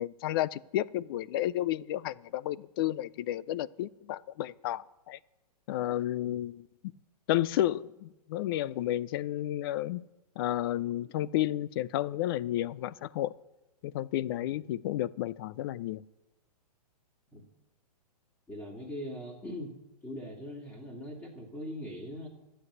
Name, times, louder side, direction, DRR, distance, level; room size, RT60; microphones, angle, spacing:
voice 1, 0.0-5.2 5.7-6.7 7.3-10.0 10.4-13.3 13.8-16.0, left 13 dB, 35° left, 0.4 m, -32 dB
voice 2, 18.5-19.8 20.0-22.3, left 1 dB, 10° left, 2.3 m, -41 dB
12.5 x 8.1 x 9.6 m
hypercardioid pair, 145°, 21 cm